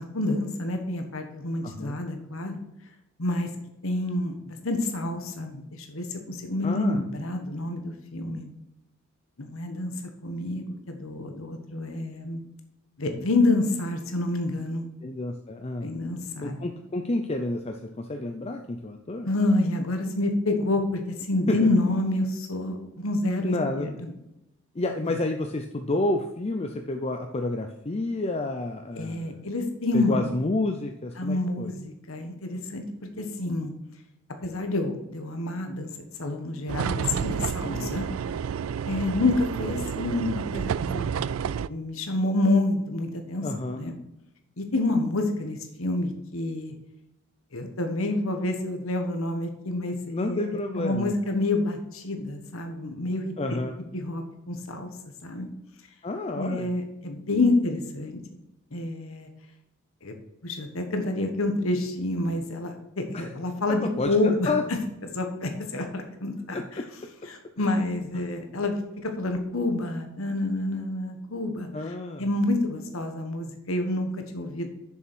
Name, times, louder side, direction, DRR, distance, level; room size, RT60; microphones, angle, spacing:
voice 1, 0.0-2.6 3.2-3.5 3.8-8.5 9.4-12.4 13.0-14.8 15.8-16.6 19.2-24.1 28.9-30.3 31.2-32.8 33.2-33.7 34.4-38.1 38.9-41.1 41.7-44.0 44.6-46.7 47.5-53.3 53.9-54.9 55.2-55.5 56.3-58.2 58.7-59.3 60.0-60.1 60.4-64.5 65.1-66.8 67.2-74.7, left 2 dB, 80° left, 5 dB, 1.3 m, -28 dB
voice 2, 1.6-2.0 6.6-7.0 15.0-15.9 16.4-19.3 21.5-21.6 23.4-23.9 24.7-29.4 29.9-31.7 37.6-38.1 43.4-43.8 50.0-51.1 53.4-53.7 56.0-56.7 63.1-63.3 63.7-64.6 66.5-66.9 67.6-67.8 71.7-72.2, left 2 dB, 30° left, 5 dB, 0.5 m, -30 dB
sound 1, 36.7-41.7, right 7 dB, 75° right, 0.3 m, -30 dB
7.1 x 6.8 x 6.1 m, 0.88 s
head